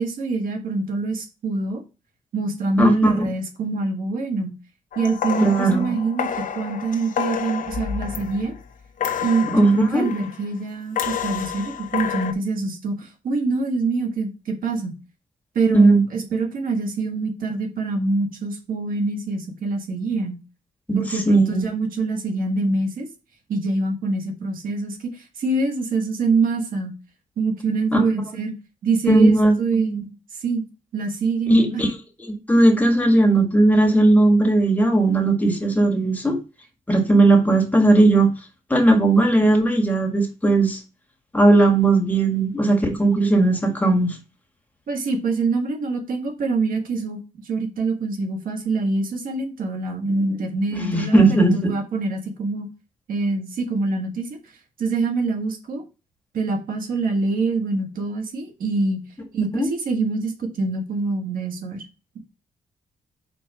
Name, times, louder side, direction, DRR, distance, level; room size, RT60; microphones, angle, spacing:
voice 1, 0.0-1.8 2.3-4.5 4.9-8.6 9.2-14.9 15.5-20.4 20.9-23.1 23.5-26.9 27.4-28.5 28.8-30.6 30.9-31.8 44.9-52.7 53.1-54.4 54.8-55.8 56.3-59.0 59.3-61.8, right 3 dB, 85° right, 1.6 m, -25 dB
voice 2, 2.8-3.1 5.4-5.9 9.5-10.1 15.7-16.0 20.9-21.6 27.9-28.0 29.1-29.5 29.9-30.0 31.5-31.9 32.3-36.4 36.9-38.3 38.7-40.8 41.3-44.2 50.8-51.7 59.5-59.7, right 2 dB, 10° left, 1.7 m, -17 dB
sound 1, 4.9-8.6 9.0-10.5 11.0-12.3, left 8 dB, 70° left, 0.8 m, -29 dB
4.6 x 4.3 x 5.5 m
cardioid pair, 100°, 14 cm